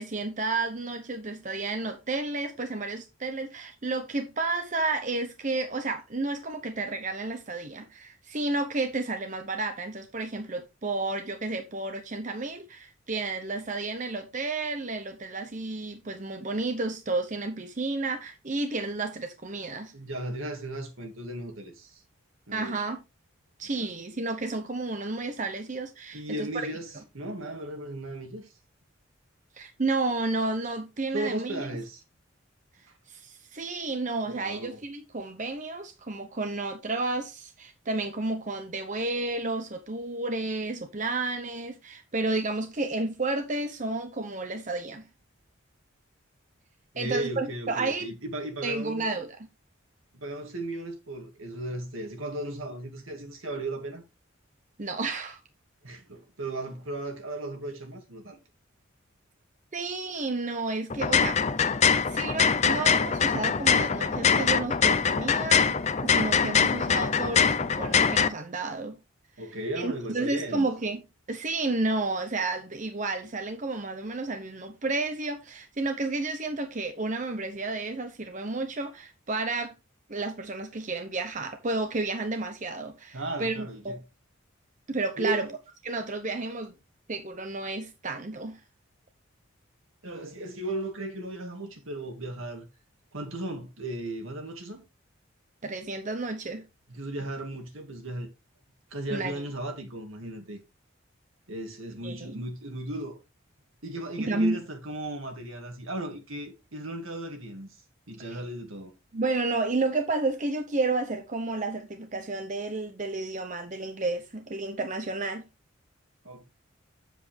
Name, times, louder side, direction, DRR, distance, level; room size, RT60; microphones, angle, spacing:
voice 1, 0.0-19.9 22.5-23.0 23.6-26.7 29.5-31.7 33.1-45.0 47.0-48.1 48.6-49.3 54.8-55.4 59.7-61.8 62.1-69.0 69.8-79.7 80.1-84.0 84.9-85.5 85.8-86.7 87.1-88.6 95.6-96.6 99.1-99.4 102.0-102.4 104.2-104.6 108.3-108.4 109.1-115.5, right 3 dB, 35° right, 0.8 m, -31 dB
voice 2, 19.9-22.0 22.5-22.8 23.7-23.9 26.1-28.5 31.1-32.0 34.2-34.8 46.9-49.1 50.1-54.0 55.8-58.4 69.4-70.7 83.1-84.0 85.2-85.5 90.0-92.7 93.1-94.8 96.9-98.3 98.9-100.6 101.5-103.2 103.8-107.7 108.1-109.0 116.2-116.4, right 1 dB, 75° right, 2.1 m, -36 dB
sound 1, 60.9-68.3, left 6 dB, 35° left, 0.5 m, -23 dB
8.1 x 7.5 x 3.3 m
head